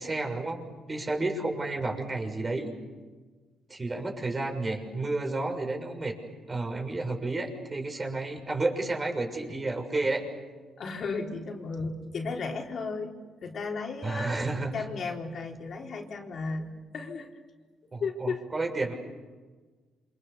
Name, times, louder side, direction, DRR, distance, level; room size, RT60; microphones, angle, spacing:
voice 1, 0.0-2.7 3.7-6.2 6.5-10.3 14.0-14.8 17.9-18.9, right 2 dB, 30° right, 3 dB, 6.6 m, -31 dB
voice 2, 10.8-13.1 13.4-17.3 18.0-18.4, left 4 dB, 55° left, 1 dB, 4.3 m, -34 dB
28.5 x 26.5 x 7.0 m, 1.4 s
cardioid pair, 90°, 0 cm